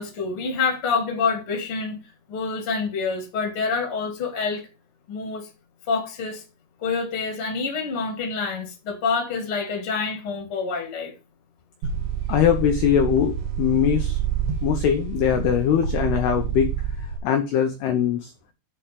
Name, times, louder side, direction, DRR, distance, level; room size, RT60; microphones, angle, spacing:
voice 1, 0.0-2.0 2.3-4.7 5.1-5.5 5.9-6.4 6.8-11.1, left 4 dB, 45° left, 2.0 m, -27 dB
sound 1, 11.8-17.2, right 8 dB, 65° right, 3.9 m, -27 dB
voice 2, 12.3-14.2 14.6-16.7 17.2-18.3, left 9 dB, 80° left, 2.3 m, -21 dB
8.5 x 4.5 x 7.3 m
omnidirectional pair, 5.8 m